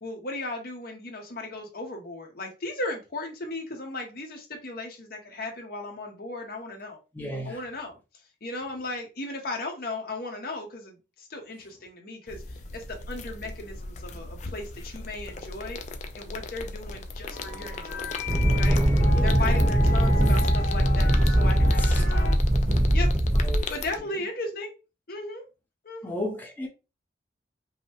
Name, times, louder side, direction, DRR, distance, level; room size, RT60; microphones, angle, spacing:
voice 1, 0.0-7.0 7.4-7.9 8.4-15.8 16.1-18.2 18.6-18.8 19.2-22.3 22.9-23.1 23.7-24.7 25.1-25.4 25.8-26.2, left 2 dB, 55° left, 1.1 m, -36 dB
voice 2, 7.1-7.6 19.1-19.3 21.8-22.0 23.3-23.6 26.0-26.7, left 1 dB, 10° left, 0.7 m, -34 dB
sound 1, 12.3-24.0, left 3 dB, 40° left, 0.5 m, -38 dB
sound 2, 13.5-22.4, left 3 dB, 85° left, 0.8 m, -37 dB
sound 3, 18.3-23.6, right 1 dB, 30° right, 1.0 m, -21 dB
5.3 x 2.1 x 2.9 m
head